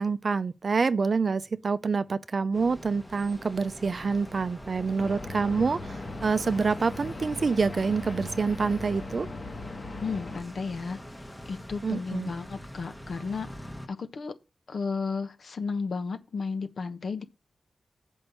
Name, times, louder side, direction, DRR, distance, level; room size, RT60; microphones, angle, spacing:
voice 1, 0.0-9.3 11.8-12.3, right 4 dB, 50° right, 0.5 m, -27 dB
sound 1, 2.5-13.9, equal, 10° left, 1.1 m, -44 dB
sound 2, 5.0-10.4, left 2 dB, 45° left, 1.5 m, -39 dB
voice 2, 10.0-11.0 11.5-13.5 13.9-14.3 14.7-17.2, left 4 dB, 65° left, 1.1 m, -33 dB
7.9 x 5.4 x 6.9 m
wide cardioid pair, 95°, 0 cm